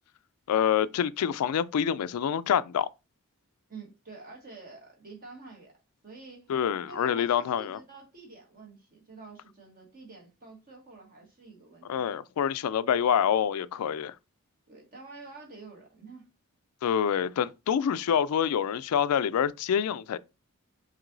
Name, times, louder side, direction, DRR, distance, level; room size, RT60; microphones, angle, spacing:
voice 1, 0.5-2.9 6.5-7.8 11.9-14.1 16.8-20.2, left 8 dB, 75° left, 0.3 m, -26 dB
voice 2, 3.7-5.8 6.0-6.5 6.9-12.1 14.7-16.3, right 3 dB, 40° right, 1.2 m, -48 dB
5.9 x 2.7 x 2.6 m
head